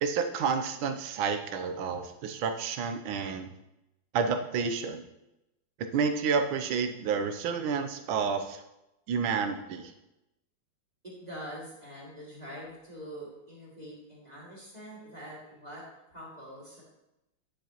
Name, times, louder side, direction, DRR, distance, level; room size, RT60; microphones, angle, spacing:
voice 1, 0.0-3.5 4.1-5.0 5.9-8.6 9.1-9.9, right 5 dB, 90° right, 6 dB, 1.5 m, -30 dB
voice 2, 11.0-16.8, equal, 20° right, -5 dB, 2.2 m, -44 dB
9.3 x 7.0 x 2.9 m, 0.91 s
omnidirectional pair, 2.1 m